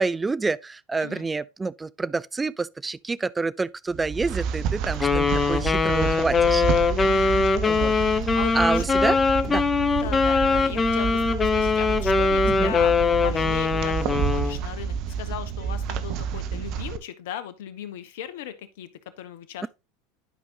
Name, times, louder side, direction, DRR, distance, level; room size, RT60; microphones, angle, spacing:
voice 1, 0.0-6.6 7.1-7.9 8.5-9.2 9.5-9.6 12.4-12.8, right 3 dB, 15° right, 0.4 m, -28 dB
sound 1, 3.9-17.0, right 7 dB, 55° right, 0.9 m, -29 dB
Wind instrument woodwind instrument, 5.0-14.6, left 4 dB, 25° left, 1.0 m, -22 dB
voice 2, 7.0-7.5 8.3-8.8 10.0-19.7, left 10 dB, 70° left, 1.1 m, -38 dB
11.0 x 5.2 x 2.9 m
hypercardioid pair, 85°, 0 cm